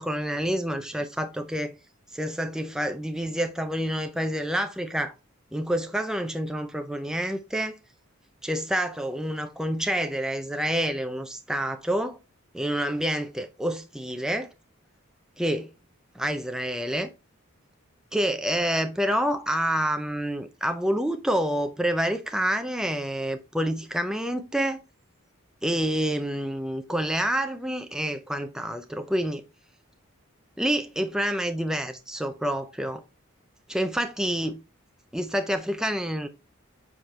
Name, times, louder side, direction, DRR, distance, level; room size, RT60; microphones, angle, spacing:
voice 1, 0.0-1.7 2.1-5.1 5.5-7.8 8.4-12.2 12.5-14.5 15.4-15.7 16.1-17.1 18.1-24.8 25.6-29.4 30.6-33.0 33.7-34.6 35.1-36.3, equal, 5° right, 0.5 m, -28 dB
7.3 x 4.4 x 3.1 m
head